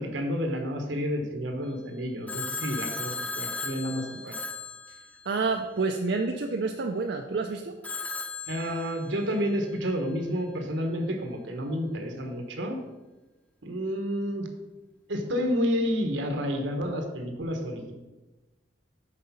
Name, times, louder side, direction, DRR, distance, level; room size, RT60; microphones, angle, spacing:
voice 1, 0.0-4.4 8.5-12.8 13.6-14.5 15.1-17.9, equal, 80° right, 4 dB, 1.3 m, -30 dB
Telephone, 2.3-5.6 7.8-9.4, left 4 dB, 10° left, 0.7 m, -36 dB
voice 2, 5.3-7.7, right 4 dB, 60° right, 3 dB, 0.5 m, -28 dB
6.6 x 5.0 x 5.6 m, 1.1 s
head